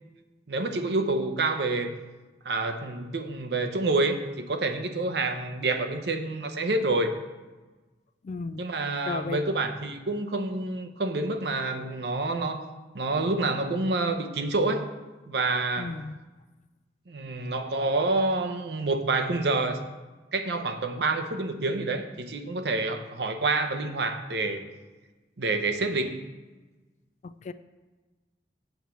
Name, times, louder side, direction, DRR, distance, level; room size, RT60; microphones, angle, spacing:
voice 1, 0.5-1.9 2.4-7.1 8.6-12.6 12.9-14.9 15.3-15.9 17.1-19.8 20.3-24.6 25.4-26.2, right 2 dB, 65° right, 7 dB, 0.7 m, -28 dB
voice 2, 8.2-8.7 9.0-9.4 15.8-16.2 27.2-27.5, left 4 dB, 40° left, 13 dB, 0.3 m, -35 dB
7.9 x 4.5 x 6.9 m, 1.2 s
head